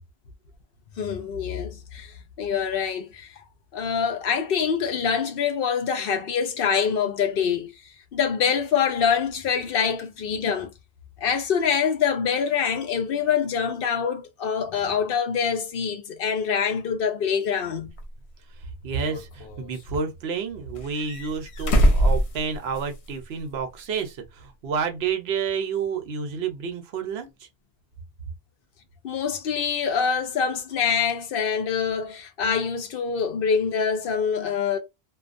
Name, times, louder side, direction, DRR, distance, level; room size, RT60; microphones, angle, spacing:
voice 1, 1.0-3.4 3.7-7.7 8.1-10.7 11.2-17.9 29.0-34.8, left 7 dB, 65° left, 0.7 m, -25 dB
sound 1, 18.0-18.1 18.9-19.8 20.7-23.1 23.4-23.5 25.1-25.2, equal, 85° left, 1.0 m, -23 dB
voice 2, 18.8-27.5, right 6 dB, 75° right, 0.9 m, -30 dB
2.4 x 2.2 x 2.4 m
omnidirectional pair, 1.1 m